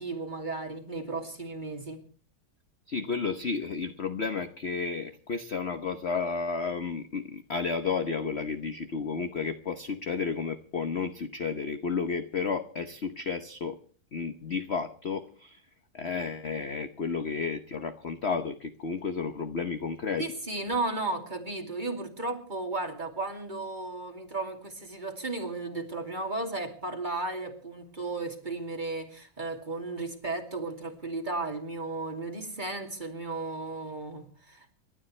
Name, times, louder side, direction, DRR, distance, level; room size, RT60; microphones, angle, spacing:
voice 1, 0.0-2.0 20.2-34.7, right 2 dB, 20° right, 2.7 m, -34 dB
voice 2, 2.9-13.8 14.1-15.6 15.9-20.3, left 5 dB, 45° left, 0.9 m, -32 dB
29.0 x 12.5 x 3.2 m
omnidirectional pair, 2.2 m